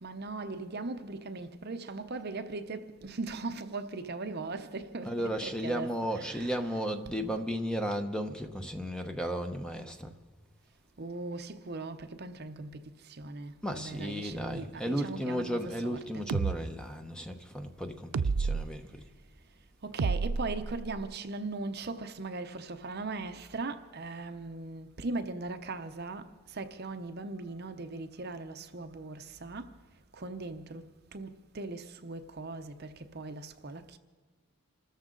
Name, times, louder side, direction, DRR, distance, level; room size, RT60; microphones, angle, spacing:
voice 1, 0.0-6.6 11.0-12.8 13.1-16.2 19.8-26.2 26.5-29.7 30.2-30.8 31.1-34.0, right 3 dB, 45° right, 0.7 m, -39 dB
voice 2, 5.0-10.1 13.6-19.0, equal, 5° left, 0.9 m, -34 dB
sound 1, 16.3-16.6 18.1-18.7 20.0-21.1, right 4 dB, 85° right, 0.5 m, -30 dB
27.0 x 13.5 x 3.9 m
head